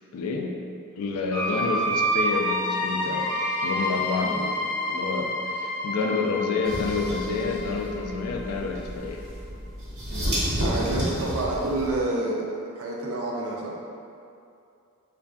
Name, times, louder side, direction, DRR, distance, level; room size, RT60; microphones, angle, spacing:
voice 1, 0.1-0.6 1.0-3.3 3.6-9.2, left 4 dB, 85° left, 2 dB, 0.3 m, -29 dB
sound 1, 1.3-8.9, equal, 20° left, 0.6 m, -28 dB
sound 2, 6.6-12.0, equal, 85° right, 1.3 m, -31 dB
voice 2, 10.1-13.7, right 2 dB, 70° right, -2 dB, 0.4 m, -29 dB
3.4 x 2.5 x 2.3 m, 2.5 s
head